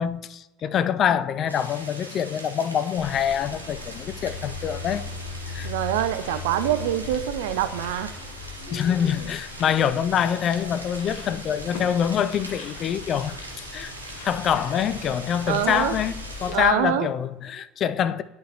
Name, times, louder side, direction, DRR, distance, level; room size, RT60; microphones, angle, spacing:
voice 1, 0.0-5.0 5.5-5.7 8.7-13.9 14.2-18.2, left 8 dB, 40° left, 0.3 m, -25 dB
sound 1, 1.5-16.5, right 2 dB, 85° right, 0.8 m, -41 dB
sound 2, 3.0-16.7, left 4 dB, 60° left, 0.9 m, -39 dB
voice 2, 5.6-8.1 15.5-16.0 16.5-17.1, right 12 dB, 65° right, 0.3 m, -25 dB
11.0 x 3.7 x 2.9 m
figure-of-eight pair, 60°, 0 cm